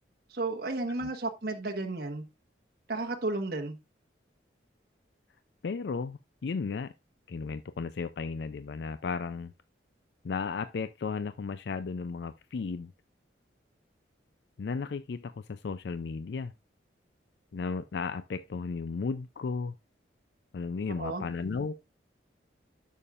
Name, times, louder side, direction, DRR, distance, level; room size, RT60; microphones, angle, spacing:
voice 1, 0.3-2.2 2.9-3.8 21.0-21.2, right 2 dB, 55° right, 1.3 m, -33 dB
voice 2, 5.6-6.9 7.3-9.5 10.2-12.9 14.6-16.5 17.5-19.7 20.5-21.9, left 4 dB, 65° left, 0.4 m, -34 dB
11.0 x 7.2 x 2.4 m
head